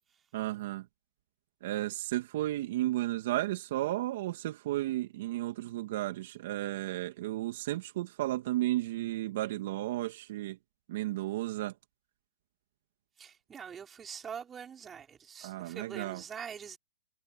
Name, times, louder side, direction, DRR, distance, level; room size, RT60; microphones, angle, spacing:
voice 1, 0.3-0.9 1.6-10.6 10.9-11.7 15.4-16.2, right 16 dB, 55° right, 2.4 m, -33 dB
voice 2, 13.2-16.8, right 7 dB, 20° right, 5.9 m, -44 dB
hypercardioid pair, 125°, 0 cm